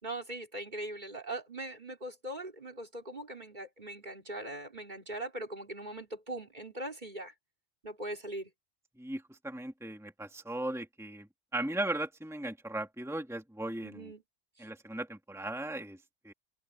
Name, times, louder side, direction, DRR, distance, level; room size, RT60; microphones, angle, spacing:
voice 1, 0.0-7.3 7.8-8.5 13.8-14.2 14.6-14.7, right 1 dB, 40° right, 3.6 m, -41 dB
voice 2, 9.0-11.3 11.5-14.1 14.6-16.0 16.2-16.3, right 1 dB, ahead, 2.3 m, -37 dB
open air
omnidirectional pair, 1.2 m